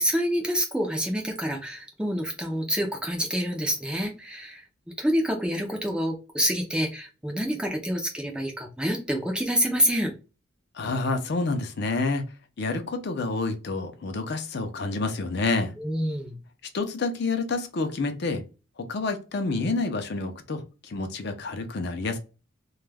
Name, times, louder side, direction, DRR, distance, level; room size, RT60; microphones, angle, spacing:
voice 1, 0.0-4.6 5.0-10.1 15.8-16.4, equal, 5° right, 0.4 m, -27 dB
voice 2, 10.7-12.3 12.6-15.7 16.7-18.4 18.8-22.2, left 3 dB, 55° left, 0.5 m, -28 dB
2.3 x 2.1 x 3.2 m
head